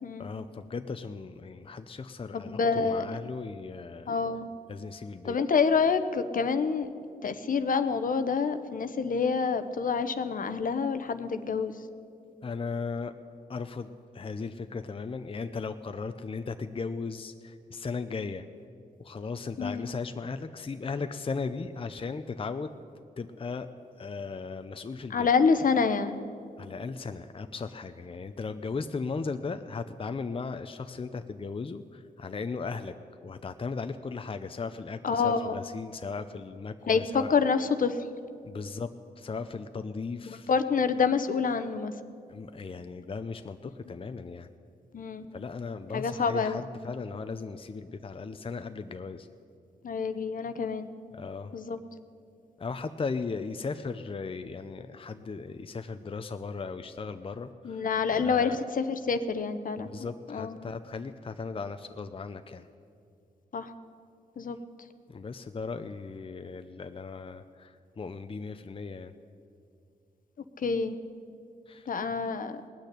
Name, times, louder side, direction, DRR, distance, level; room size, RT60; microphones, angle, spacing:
voice 1, 0.2-4.1 4.7-5.4 12.4-13.1 13.5-18.4 19.0-22.7 23.2-23.7 24.0-25.3 26.6-32.9 33.2-37.3 38.4-38.9 39.2-40.5 42.3-44.5 45.3-49.3 51.1-51.5 52.6-57.8 58.1-58.6 59.8-62.7 65.1-69.1 71.7-71.9, left 4 dB, 35° left, 9 dB, 0.6 m, -37 dB
voice 2, 2.3-3.1 4.1-4.5 5.2-6.9 7.2-11.8 19.6-19.9 25.1-26.2 35.0-35.5 36.9-38.0 40.3-41.9 44.9-45.3 45.9-46.6 49.8-50.9 51.5-51.8 57.6-59.9 60.3-60.6 63.5-63.7 64.4-64.6 70.6-71.0 71.9-72.6, left 5 dB, 65° left, 10 dB, 0.9 m, -27 dB
18.5 x 6.6 x 10.0 m, 2.4 s
cardioid pair, 60°, 15 cm